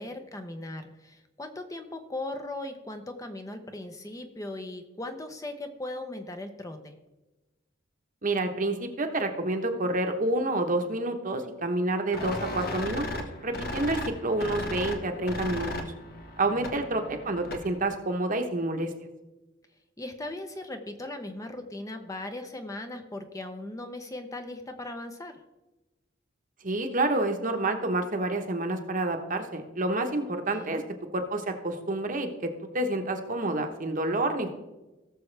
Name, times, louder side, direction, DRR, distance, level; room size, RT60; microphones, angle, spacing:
voice 1, 0.0-7.0 16.5-16.8 20.0-25.4 30.5-30.8, left 2 dB, 15° left, 6 dB, 0.8 m, -38 dB
voice 2, 8.2-15.7 16.4-18.9 26.6-30.8 31.1-34.5, right 2 dB, 45° right, 5 dB, 1.1 m, -28 dB
sound 1, 12.1-17.8, left 1 dB, 55° left, 1.4 m, -36 dB
17.5 x 6.9 x 3.4 m, 1.1 s
head